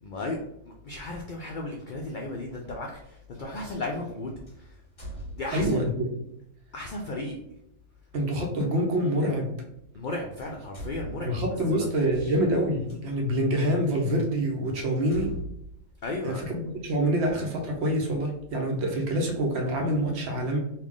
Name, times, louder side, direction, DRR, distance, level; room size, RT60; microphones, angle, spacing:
voice 1, 0.0-4.7 5.3-5.8 6.7-7.4 9.9-11.4 11.9-12.3 16.0-16.4, left 2 dB, 75° left, 0 dB, 0.4 m, -35 dB
sound 1, 2.4-2.5 4.5-5.9 6.9-7.1 8.9-9.0 10.0-10.1 10.4-13.0 13.7-13.8 14.2-14.3 15.0-16.7, right 1 dB, 25° left, 1.3 m, -42 dB
voice 2, 5.5-6.1 8.1-9.5 11.2-15.3 16.2-20.6, right 1 dB, 60° right, 1 dB, 1.0 m, -26 dB
3.3 x 2.4 x 3.5 m, 0.80 s
omnidirectional pair, 1.4 m